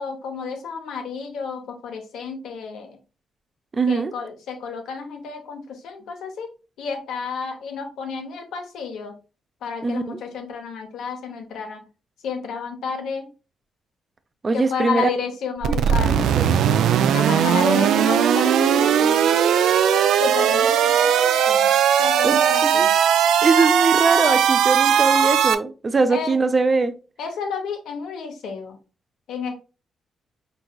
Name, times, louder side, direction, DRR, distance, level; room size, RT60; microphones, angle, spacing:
voice 1, 0.0-3.0 3.9-6.5 6.8-9.1 9.6-11.8 12.2-13.3 14.5-16.4 17.1-19.3 20.2-21.7 22.0-22.9 24.8-25.3 26.1-26.4 27.2-28.8 29.3-29.5, left 5 dB, 85° left, 1.0 m, -31 dB
voice 2, 3.7-4.1 9.8-10.2 14.4-15.1 15.9-16.4 17.2-17.4 19.3-19.6 22.2-22.9 23.4-26.9, right 4 dB, 35° right, 0.5 m, -22 dB
sound 1, 15.6-25.5, right 8 dB, 90° right, 0.4 m, -18 dB
4.5 x 4.0 x 2.3 m
cardioid pair, 95°, 0 cm